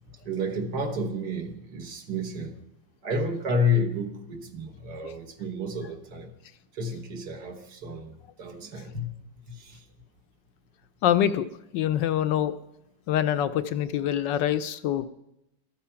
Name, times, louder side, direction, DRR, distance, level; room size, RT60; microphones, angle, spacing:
voice 1, 0.2-2.6 3.0-6.3 6.7-9.1 9.5-9.9, left 2 dB, 55° right, 5 dB, 1.8 m, -30 dB
voice 2, 11.0-11.5 11.7-12.5 13.1-15.1, left 10 dB, 70° left, 12 dB, 1.2 m, -25 dB
13.5 x 13.5 x 5.7 m, 0.86 s
omnidirectional pair, 2.1 m